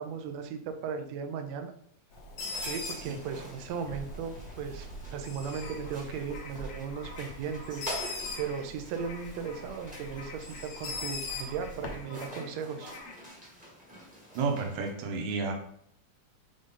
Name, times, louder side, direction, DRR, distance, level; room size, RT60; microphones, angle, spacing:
voice 1, 0.0-1.7 2.6-12.9, right 6 dB, 75° right, 6 dB, 1.7 m, -37 dB
Bird, 2.1-12.0, left 2 dB, 60° left, 1.7 m, -41 dB
sound 1, 2.4-14.9, equal, 5° right, 0.9 m, -46 dB
sound 2, 5.6-13.3, left 3 dB, 80° left, 2.4 m, -49 dB
voice 2, 14.3-15.5, right 4 dB, 90° right, 2 dB, 2.6 m, -31 dB
6.5 x 3.9 x 3.7 m, 0.68 s
omnidirectional pair, 3.6 m